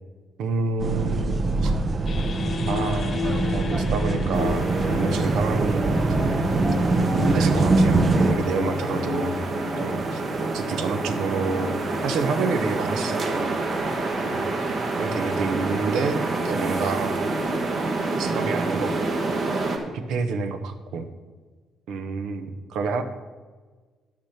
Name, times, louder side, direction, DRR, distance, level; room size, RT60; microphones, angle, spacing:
voice 1, 0.4-1.7 2.7-3.2 3.5-5.9 6.2-6.4 7.3-9.4 9.8-10.2 10.5-11.7 12.0-13.6 14.2-14.4 15.0-17.2 18.2-19.3 20.1-21.1 21.9-23.0, right 4 dB, 85° right, 8 dB, 0.9 m, -28 dB
sound 1, 0.8-8.4, right 3 dB, 40° right, 0.6 m, -23 dB
sound 2, 2.1-11.4, left 7 dB, 55° left, 0.4 m, -33 dB
sound 3, 4.3-19.8, right 3 dB, 60° right, 1.5 m, -28 dB
10.5 x 6.1 x 5.8 m, 1.4 s
cardioid pair, 90°, 0 cm